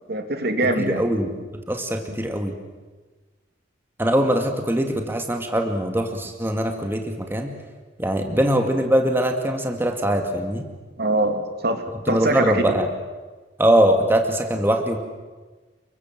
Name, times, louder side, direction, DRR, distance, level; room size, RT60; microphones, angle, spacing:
voice 1, 0.1-1.0 2.1-2.2 11.0-12.6, right 2 dB, 55° right, 6 dB, 3.1 m, -23 dB
voice 2, 0.8-1.3 1.7-2.5 4.0-7.5 8.0-10.7 12.1-12.9 13.6-15.0, right 1 dB, 10° right, 4 dB, 2.2 m, -22 dB
30.0 x 23.0 x 7.7 m, 1.3 s
head